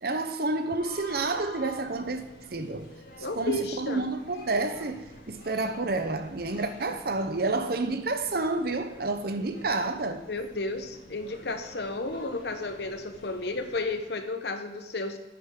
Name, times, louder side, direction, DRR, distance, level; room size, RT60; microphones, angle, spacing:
voice 1, 0.0-2.2 2.5-2.9 3.3-10.3, right 3 dB, 55° right, 0.8 m, -29 dB
sound 1, 0.8-14.0, left 2 dB, 90° left, 3.3 m, -48 dB
voice 2, 3.2-4.0 10.3-15.2, left 2 dB, 60° left, 0.9 m, -33 dB
9.9 x 9.5 x 3.8 m
head